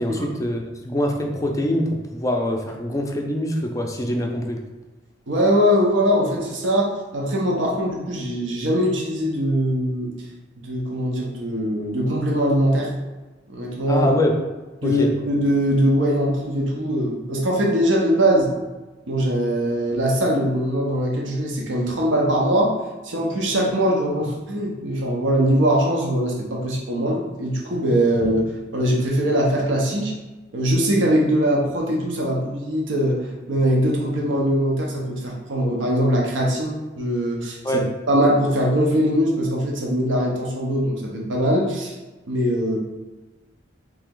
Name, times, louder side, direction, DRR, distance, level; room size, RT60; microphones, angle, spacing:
voice 1, 0.0-4.6 13.9-14.3 14.8-15.1 37.6-37.8, left 1 dB, 15° left, 1 dB, 0.4 m, -24 dB
voice 2, 5.3-10.1 10.6-12.9 13.5-14.1 14.8-18.5 19.1-22.8 23.0-30.1 30.5-41.9 42.3-42.8, equal, 80° right, -2 dB, 0.7 m, -21 dB
3.3 x 2.9 x 3.7 m, 1.2 s
head